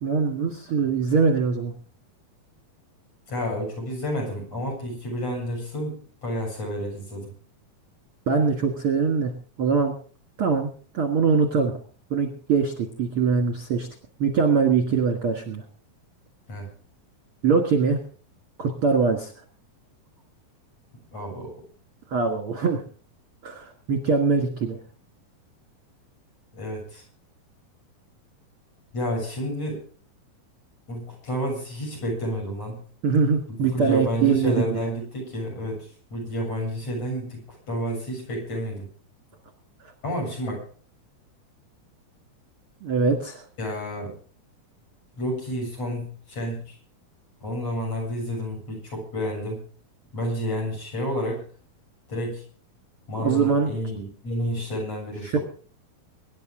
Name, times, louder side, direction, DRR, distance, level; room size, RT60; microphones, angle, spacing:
voice 1, 0.0-1.7 8.3-9.3 9.6-9.9 10.4-10.7 10.9-11.7 12.1-13.9 14.2-15.6 17.4-18.0 18.6-19.4 22.1-22.8 23.4-24.8 33.0-34.9 42.8-43.5 53.2-53.7 55.2-55.4, right 5 dB, 50° right, 4 dB, 2.0 m, -22 dB
voice 2, 3.3-7.3 16.5-16.7 21.1-21.5 26.5-27.0 28.9-29.8 30.9-32.8 33.5-38.9 40.0-40.6 43.6-44.1 45.2-46.8 47.4-49.6 50.1-51.4 52.1-52.4 53.1-55.4, equal, 40° left, -1 dB, 8.8 m, -30 dB
24.5 x 11.0 x 3.8 m, 0.43 s
omnidirectional pair, 4.4 m